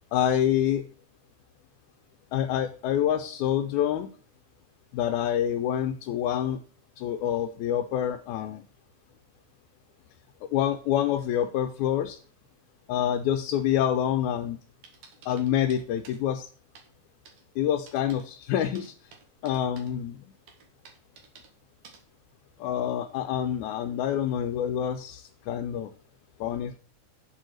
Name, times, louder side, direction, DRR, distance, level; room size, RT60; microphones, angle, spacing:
voice 1, 0.1-0.9 2.3-4.1 4.9-6.6 7.0-8.6 10.5-12.2 12.9-14.6 15.3-16.5 17.6-18.9 19.4-20.2 22.6-25.9 26.4-26.8, left 10 dB, 80° left, 6 dB, 2.0 m, -27 dB
sound 1, 14.8-16.2 16.8-16.9 17.3-17.4 17.9-18.2 18.8-19.9 20.5-21.5 21.8-22.0, right 5 dB, 65° right, 2.5 m, -51 dB
7.0 x 4.6 x 6.3 m, 0.43 s
omnidirectional pair, 3.5 m